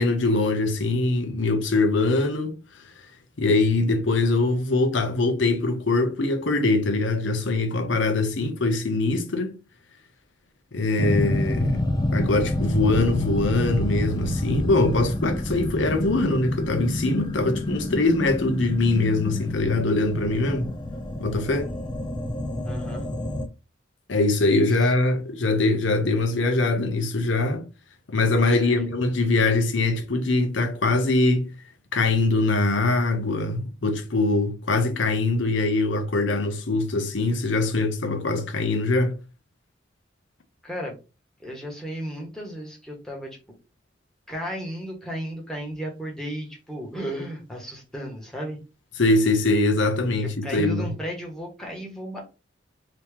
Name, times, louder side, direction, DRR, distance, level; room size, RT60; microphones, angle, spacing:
voice 1, 0.0-2.5 3.4-9.5 10.7-20.7 21.2-21.7 24.1-27.6 28.1-31.5 31.9-39.1 49.0-50.9, left 2 dB, 80° left, 0.8 m, -23 dB
sound 1, 11.0-23.5, left 1 dB, 25° left, 0.4 m, -28 dB
voice 2, 22.6-23.1 28.6-28.8 40.6-40.9 41.4-43.4 44.3-48.6 50.2-52.2, equal, 5° left, 1.2 m, -34 dB
3.0 x 2.8 x 3.5 m
head